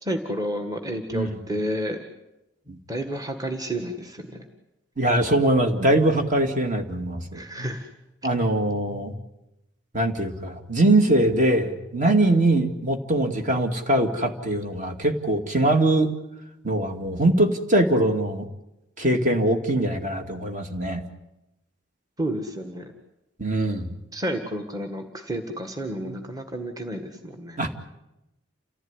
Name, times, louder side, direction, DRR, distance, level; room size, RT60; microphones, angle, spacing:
voice 1, 0.0-2.0 2.9-4.5 7.3-7.9 22.2-22.9 24.1-27.6, equal, 20° right, 5 dB, 1.8 m, -30 dB
voice 2, 5.0-7.7 8.2-9.1 9.9-16.1 16.6-18.5 19.0-21.0 23.4-23.9 26.0-26.1 27.6-27.8, right 1 dB, 40° right, 5 dB, 2.3 m, -22 dB
29.0 x 15.5 x 9.8 m, 0.92 s
head